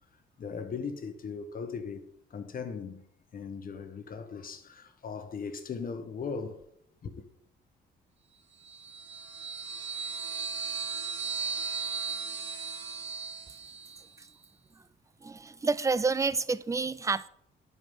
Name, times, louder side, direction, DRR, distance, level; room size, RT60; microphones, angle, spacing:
voice 1, 0.4-3.1 3.3-6.6 7.0-7.2, left 5 dB, 45° left, 1.1 m, -38 dB
sound 1, 8.6-14.1, right 5 dB, 60° right, 1.4 m, -36 dB
voice 2, 15.2-17.3, right 4 dB, 15° right, 0.4 m, -29 dB
11.0 x 4.9 x 5.4 m
cardioid pair, 90°, 20 cm